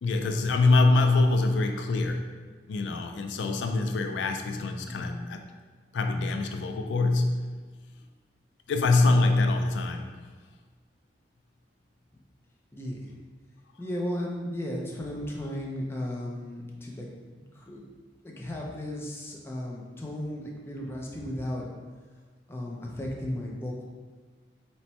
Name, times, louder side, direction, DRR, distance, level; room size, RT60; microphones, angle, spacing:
voice 1, 0.0-2.3 2.7-5.4 5.9-7.5 8.7-10.1, left 3 dB, 80° left, 5 dB, 0.3 m, -24 dB
voice 2, 12.7-13.1 13.8-17.8 18.2-21.7 22.5-23.8, left 1 dB, 15° left, -2 dB, 0.4 m, -35 dB
4.2 x 2.1 x 4.2 m, 1.4 s
head